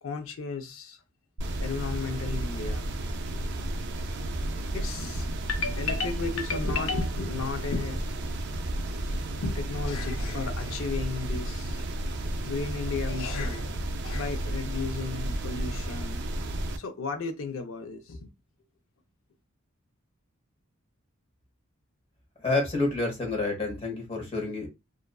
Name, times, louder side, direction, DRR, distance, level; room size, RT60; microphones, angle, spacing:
voice 1, 0.0-1.0 1.6-2.9 3.3-3.5 4.7-8.7 9.4-11.9 12.4-16.3 16.8-18.3, left 4 dB, 70° left, 0.5 m, -34 dB
sound 1, 1.4-16.8, right 1 dB, 55° right, 0.4 m, -32 dB
voice 2, 22.4-24.7, left 2 dB, 30° left, 0.9 m, -28 dB
2.5 x 2.2 x 2.2 m
head